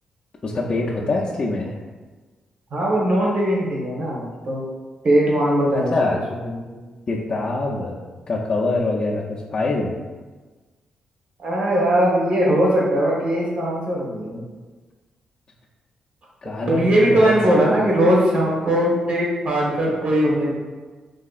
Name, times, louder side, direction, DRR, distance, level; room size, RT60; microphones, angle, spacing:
voice 1, 0.4-1.8 5.7-6.2 7.1-8.0 8.3-9.9 16.4-17.4 17.7-17.8, left 2 dB, 40° left, -4 dB, 0.4 m, -24 dB
voice 2, 2.7-4.7 5.0-6.8 11.4-14.4 16.6-20.5, right 1 dB, 50° right, -4 dB, 1.0 m, -20 dB
3.1 x 2.7 x 2.4 m, 1.3 s
cardioid pair, 70°, 2 cm